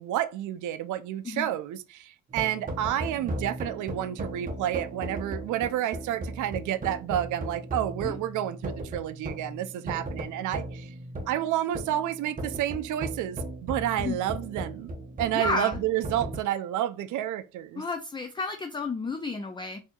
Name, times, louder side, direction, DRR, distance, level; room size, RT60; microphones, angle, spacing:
voice 1, 0.0-10.9 11.3-14.9 15.2-17.8, right 12 dB, 75° right, 0.5 m, -30 dB
sound 1, 2.3-16.4, right 1 dB, 30° right, 0.8 m, -37 dB
voice 2, 15.3-15.8 17.8-19.8, left 3 dB, 15° left, 0.4 m, -31 dB
4.1 x 2.8 x 2.3 m
cardioid pair, 90°, 30 cm